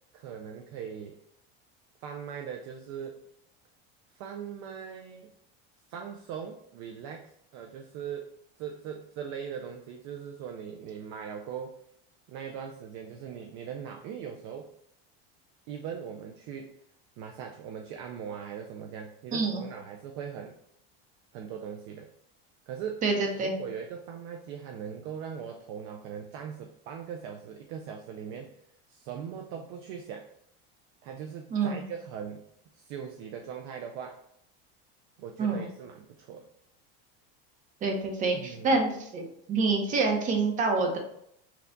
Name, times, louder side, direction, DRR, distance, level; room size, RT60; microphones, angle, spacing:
voice 1, 0.1-1.2 2.0-3.2 4.1-5.3 5.9-11.8 12.3-14.7 15.7-16.7 17.2-20.6 21.3-22.1 22.7-23.0 23.4-28.5 28.9-30.3 31.0-32.4 32.8-34.2 35.2-36.5 38.3-38.8, right 7 dB, 45° right, 3 dB, 0.4 m, -40 dB
voice 2, 19.3-19.6 23.0-23.5 31.5-31.8 35.4-35.7 37.8-41.0, right 3 dB, 25° right, 2 dB, 0.8 m, -27 dB
5.9 x 2.3 x 3.8 m, 0.73 s
cardioid pair, 165°, 31 cm